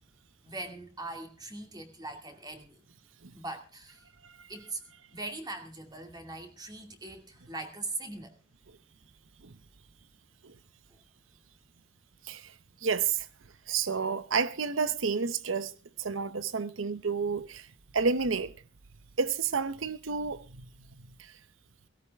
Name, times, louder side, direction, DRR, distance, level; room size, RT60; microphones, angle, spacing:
voice 1, 0.4-2.8 3.3-4.1 4.5-4.8 5.1-8.4 10.9-11.0, right 2 dB, 20° right, 2.4 m, -41 dB
voice 2, 12.8-13.3 13.7-15.7 16.0-17.7 17.9-18.5 19.2-20.7 21.2-21.3, right 5 dB, 85° right, 0.9 m, -30 dB
17.0 x 17.0 x 3.5 m
head